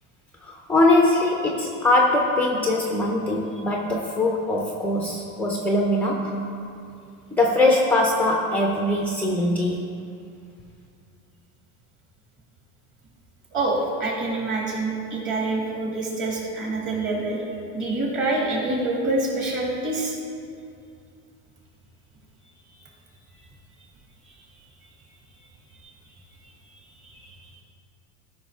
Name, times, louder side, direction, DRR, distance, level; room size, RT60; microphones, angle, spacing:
voice 1, 0.4-6.4 7.3-9.9, left 2 dB, 5° left, 0 dB, 0.3 m, -22 dB
voice 2, 13.5-17.4 17.7-20.2, right 2 dB, 30° right, -2 dB, 2.1 m, -26 dB
14.0 x 5.5 x 3.4 m, 2.5 s
supercardioid pair, 150°, 40 cm